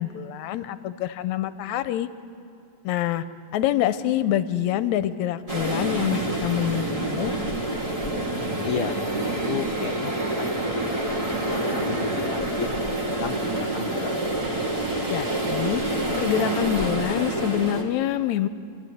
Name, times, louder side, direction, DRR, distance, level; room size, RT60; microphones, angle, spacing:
voice 1, 0.0-2.1 2.8-3.2 3.5-7.3 15.1-15.8 16.2-18.5, left 11 dB, 80° left, 13 dB, 2.0 m, -26 dB
sound 1, 5.5-17.8, right 1 dB, 15° right, 1.8 m, -27 dB
voice 2, 8.6-12.7 13.0-14.2, left 6 dB, 65° left, 3 dB, 1.4 m, -34 dB
29.0 x 13.5 x 9.4 m, 2.6 s
omnidirectional pair, 3.4 m